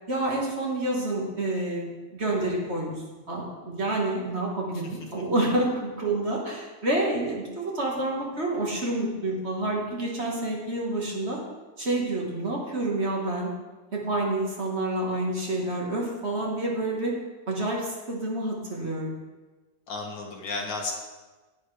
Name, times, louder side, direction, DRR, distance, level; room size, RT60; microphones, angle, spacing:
voice 1, 0.1-2.9 3.3-11.4 11.8-13.5 13.9-17.1 17.5-19.2, right 2 dB, 40° right, -2 dB, 1.6 m, -28 dB
voice 2, 19.9-20.9, left 3 dB, 80° left, 1 dB, 2.0 m, -33 dB
10.0 x 9.5 x 3.3 m, 1.2 s
omnidirectional pair, 2.0 m